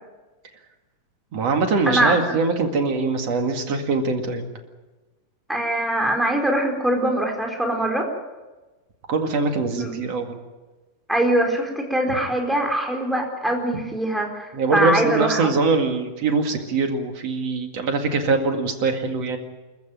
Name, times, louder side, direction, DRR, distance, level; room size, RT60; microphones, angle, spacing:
voice 1, 1.3-4.5 9.1-10.4 14.5-19.4, right 4 dB, 50° right, 5 dB, 2.8 m, -22 dB
voice 2, 1.9-2.4 5.5-8.1 9.8-9.9 11.1-15.5, right 1 dB, ahead, 1 dB, 3.8 m, -22 dB
27.5 x 14.5 x 9.0 m, 1.2 s
omnidirectional pair, 4.3 m